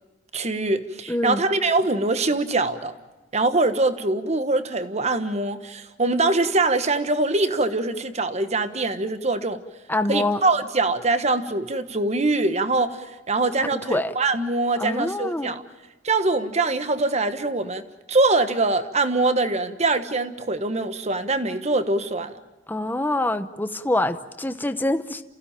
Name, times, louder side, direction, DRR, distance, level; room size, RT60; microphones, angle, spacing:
voice 1, 0.3-2.9 3.3-9.6 10.1-13.0 13.3-15.6 16.0-17.8 18.1-22.4, right 2 dB, 35° right, 10 dB, 1.3 m, -23 dB
voice 2, 1.1-1.4 9.9-10.4 13.7-14.1 14.8-15.6 22.7-25.2, left 1 dB, 10° left, 9 dB, 0.8 m, -25 dB
29.0 x 16.0 x 8.9 m, 1.2 s
head